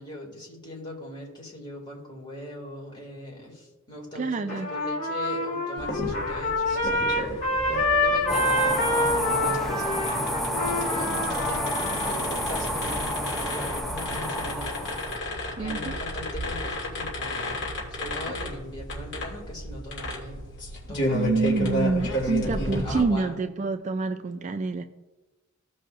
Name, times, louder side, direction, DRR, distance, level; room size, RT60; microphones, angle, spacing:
voice 1, 0.0-7.4 7.6-10.3 10.8-15.3 15.6-17.6 17.9-20.4 20.9-23.4, left 1 dB, 20° left, -3 dB, 2.3 m, -40 dB
voice 2, 4.1-4.7 15.6-16.0 21.1-24.8, right 3 dB, 35° right, 8 dB, 0.3 m, -27 dB
Trumpet, 4.5-12.1, left 2 dB, 75° left, 2.0 m, -27 dB
sound 1, 5.8-23.0, left 1 dB, 55° left, 2.4 m, -33 dB
sound 2, 8.3-15.2, equal, ahead, 0.7 m, -30 dB
16.0 x 5.5 x 2.5 m, 1.1 s
head